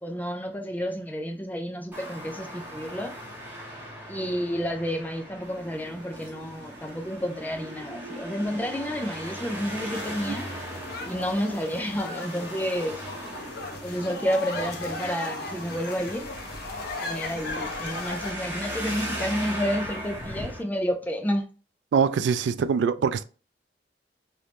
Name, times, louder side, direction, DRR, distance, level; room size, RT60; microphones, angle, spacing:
voice 1, 0.0-3.2 4.1-10.5 11.0-13.0 13.8-16.3 17.0-21.4, equal, 10° left, 0.4 m, -30 dB
Traffic noise roadway noise, 1.9-20.6, equal, 10° right, 1.0 m, -39 dB
sound 1, 5.4-16.1, right 1 dB, 65° right, 1.0 m, -46 dB
sound 2, 9.9-18.3, left 3 dB, 60° left, 0.7 m, -37 dB
voice 2, 21.9-23.2, right 6 dB, 85° right, 0.3 m, -23 dB
3.0 x 2.6 x 3.3 m
head